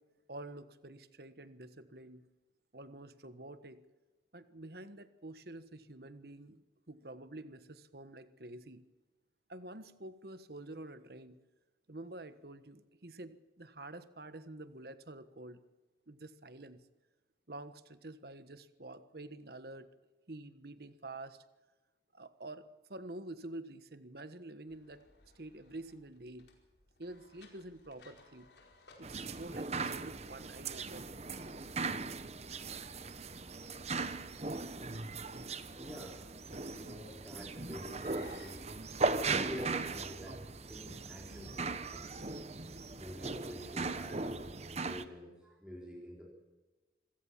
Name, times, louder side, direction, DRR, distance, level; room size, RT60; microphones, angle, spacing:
voice 1, 0.3-2.2 2.7-3.8 4.3-6.6 6.9-8.8 9.5-11.4 11.9-15.6 16.1-16.8 17.5-19.9 20.3-21.4 22.1-22.6 22.9-25.0 25.3-26.5 27.0-28.5 29.0-31.1, right 2 dB, 60° right, 12 dB, 1.4 m, -48 dB
sound 1, 24.7-40.0, left 3 dB, 75° left, 4.7 m, -64 dB
sound 2, 29.0-45.0, right 3 dB, 40° right, 1.1 m, -38 dB
voice 2, 35.8-36.2 36.6-40.4 40.7-42.7 42.9-46.3, equal, 5° right, -3 dB, 3.9 m, -48 dB
26.5 x 16.5 x 7.4 m, 1.2 s
head